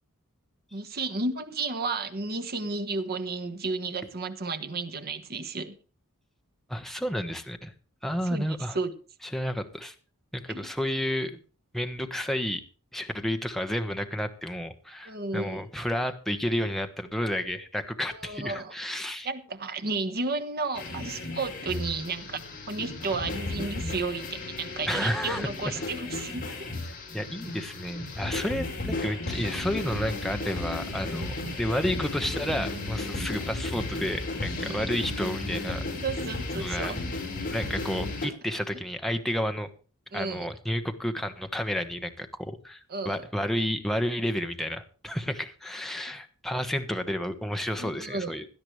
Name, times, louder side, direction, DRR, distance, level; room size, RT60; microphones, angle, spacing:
voice 1, 0.7-5.7 8.1-8.5 8.7-8.9 10.5-10.6 15.0-15.6 18.1-18.7 19.2-22.4 22.7-26.7 30.9-31.6 33.1-33.3 34.6-34.9 36.0-37.0 40.1-40.5 42.9-43.2 47.7-48.3, right 3 dB, 45° right, 1.4 m, -33 dB
voice 2, 6.7-7.7 8.0-8.8 9.3-9.9 10.3-11.4 11.7-12.6 12.9-19.3 24.9-25.5 27.1-35.8 36.6-36.9 37.4-39.7 40.1-42.8 43.0-48.5, equal, ahead, 1.1 m, -31 dB
sound 1, 20.7-38.3, left 2 dB, 40° left, 4.8 m, -34 dB
17.0 x 12.0 x 3.3 m
head